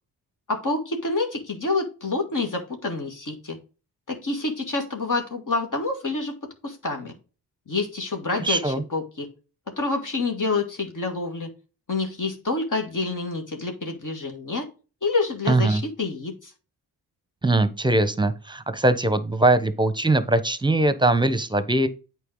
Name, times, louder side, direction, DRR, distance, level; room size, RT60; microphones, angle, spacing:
voice 1, 0.5-3.6 4.1-6.3 6.6-7.1 7.7-9.3 9.8-11.5 11.9-14.7 15.0-16.5, left 3 dB, 45° left, 1.9 m, -27 dB
voice 2, 8.4-8.8 15.5-15.8 17.4-21.9, right 2 dB, 10° right, 1.1 m, -21 dB
8.3 x 4.7 x 3.9 m
supercardioid pair, 45°, 44 cm